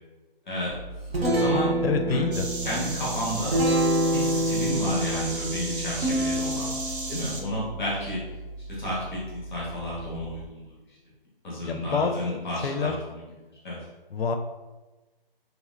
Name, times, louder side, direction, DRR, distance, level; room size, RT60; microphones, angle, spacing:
voice 1, 0.4-0.8 1.3-1.8 2.1-2.2 2.6-3.6 4.1-6.7 7.1-8.2 8.7-10.6 11.4-13.3 13.6-13.8, equal, 5° left, -7 dB, 0.6 m, -31 dB
Guitar, 0.7-10.5, right 1 dB, 80° right, 1.0 m, -29 dB
voice 2, 1.8-2.5 11.6-12.9 14.1-14.4, left 5 dB, 80° left, 5 dB, 0.5 m, -27 dB
sound 1, 2.3-7.4, right 2 dB, 60° right, 0.7 m, -35 dB
3.1 x 2.6 x 2.4 m, 1.2 s
figure-of-eight pair, 165°, 29 cm